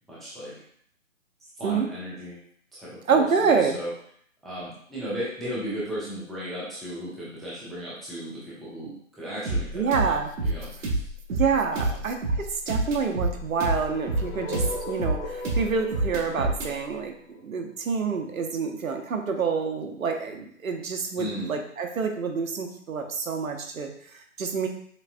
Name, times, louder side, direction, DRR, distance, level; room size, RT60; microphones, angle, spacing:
voice 1, 0.1-0.5 1.5-2.4 2.7-3.9 4.4-11.0 11.7-12.0 21.2-21.5, equal, ahead, -9 dB, 0.3 m, -36 dB
voice 2, 3.1-3.8 9.7-10.3 11.3-24.7, right 5 dB, 90° right, 4 dB, 0.9 m, -27 dB
sound 1, 9.4-16.7, right 2 dB, 65° right, 1.2 m, -28 dB
sound 2, 13.5-17.6, left 1 dB, 80° left, 1.3 m, -38 dB
6.4 x 2.2 x 2.5 m, 0.64 s
hypercardioid pair, 160°, 40 cm